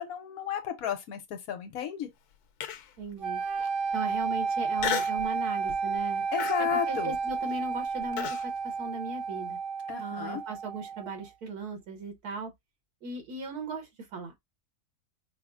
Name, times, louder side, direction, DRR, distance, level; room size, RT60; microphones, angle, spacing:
voice 1, 0.0-2.1 6.3-7.2 9.9-10.4, left 8 dB, 75° left, 1.2 m, -33 dB
Human voice, 2.6-3.0 3.6-3.7 4.8-5.3 5.7-6.0 6.4-8.4, left 10 dB, 90° left, 1.2 m, -34 dB
voice 2, 3.0-3.4 3.9-6.2 6.6-9.6 10.0-12.5 13.0-14.4, right 3 dB, 80° right, 1.7 m, -38 dB
sound 1, 3.2-11.3, right 5 dB, 45° right, 0.9 m, -32 dB
4.9 x 2.1 x 2.3 m
omnidirectional pair, 1.6 m